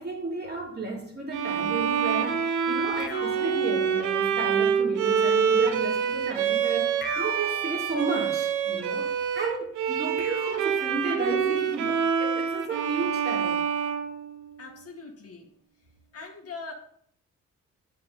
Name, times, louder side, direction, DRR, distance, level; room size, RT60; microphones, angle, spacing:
voice 1, 0.0-13.6, right 3 dB, 35° right, -2 dB, 3.1 m, -33 dB
Bowed string instrument, 1.3-14.8, right 7 dB, 80° right, 0.9 m, -26 dB
sound 1, 3.0-4.6 7.0-8.6 10.2-11.7, left 3 dB, 35° left, 1.1 m, -41 dB
voice 2, 14.6-15.5 16.1-16.7, left 4 dB, 50° left, 2 dB, 1.9 m, -41 dB
7.7 x 5.7 x 5.5 m, 0.63 s
cardioid pair, 90°, 30 cm